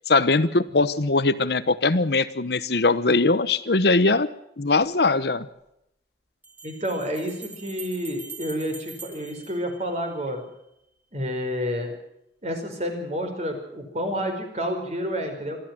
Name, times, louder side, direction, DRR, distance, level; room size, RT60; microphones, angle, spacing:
voice 1, 0.1-4.3 4.6-5.5, left 3 dB, 60° left, 13 dB, 1.0 m, -21 dB
Bell, 4.8-4.9 6.4-10.4, right 4 dB, 10° right, 3.3 m, -44 dB
voice 2, 6.6-10.4 11.1-11.9 12.4-15.6, equal, 35° right, 5 dB, 5.0 m, -29 dB
26.5 x 13.0 x 7.6 m, 0.81 s
head